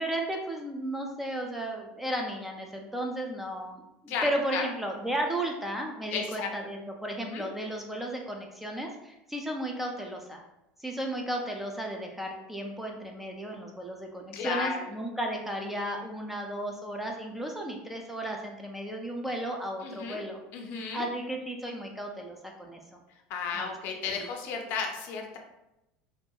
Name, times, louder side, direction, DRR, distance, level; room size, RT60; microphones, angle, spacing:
voice 1, 0.0-10.4 10.8-20.4 20.7-23.0 23.5-23.7 24.1-24.3, right 1 dB, 5° right, 1 dB, 0.3 m, -34 dB
voice 2, 4.1-4.6 6.1-6.5 7.3-7.4 14.3-14.8 19.8-20.2 20.5-21.0 23.3-25.4, left 5 dB, 60° left, 2 dB, 0.5 m, -33 dB
2.7 x 2.3 x 2.2 m, 0.89 s
supercardioid pair, 125°, 4 cm